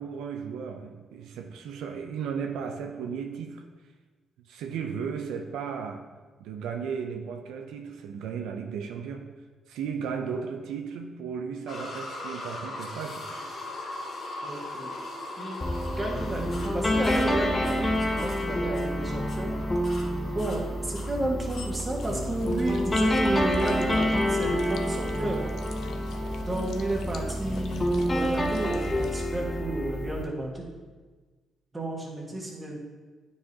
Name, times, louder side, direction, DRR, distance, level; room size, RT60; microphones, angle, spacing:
voice 1, 0.0-3.6 4.4-6.1 6.4-9.4 9.7-13.5, right 6 dB, 85° right, 4 dB, 0.4 m, -35 dB
sound 1, 11.7-26.7 27.4-27.5 28.0-28.1, left 2 dB, 50° left, 1.6 m, -41 dB
voice 2, 14.4-15.0 15.4-19.5 20.3-25.4 26.4-30.6 31.7-32.8, right 1 dB, 20° right, -2 dB, 1.5 m, -32 dB
sound 2, 15.6-30.2, equal, 20° left, 0.7 m, -28 dB
sound 3, 21.6-29.2, left 6 dB, 65° left, 0.5 m, -46 dB
9.2 x 4.8 x 2.8 m, 1.4 s
cardioid pair, 90°, 0 cm